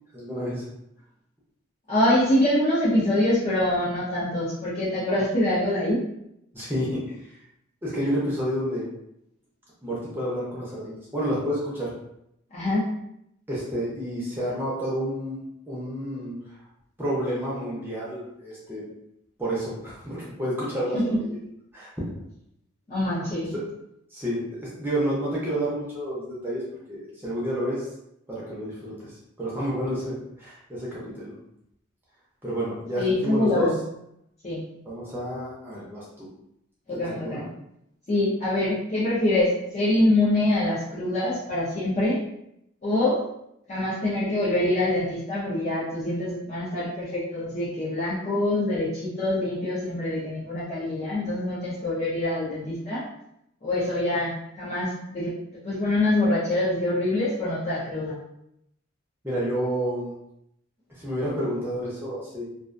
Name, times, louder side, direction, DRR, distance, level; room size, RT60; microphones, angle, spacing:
voice 1, 0.1-0.6 6.5-7.0 7.8-8.9 9.8-11.9 13.5-15.4 15.7-16.4 17.0-18.9 19.4-21.4 21.7-21.9 23.5-23.6 24.1-26.6 26.9-27.9 28.3-31.4 32.4-33.7 34.8-36.3 36.9-37.4 59.2-60.1 61.0-62.4, equal, 10° right, -7 dB, 0.6 m, -30 dB
voice 2, 1.9-6.0 12.5-12.9 20.9-21.0 22.9-23.6 33.0-33.8 34.4-34.7 36.9-37.5 38.1-42.2 42.8-43.2 43.7-53.0 53.6-55.3 55.6-58.2, left 1 dB, 35° left, -9 dB, 0.5 m, -25 dB
2.3 x 2.2 x 2.5 m, 0.79 s
head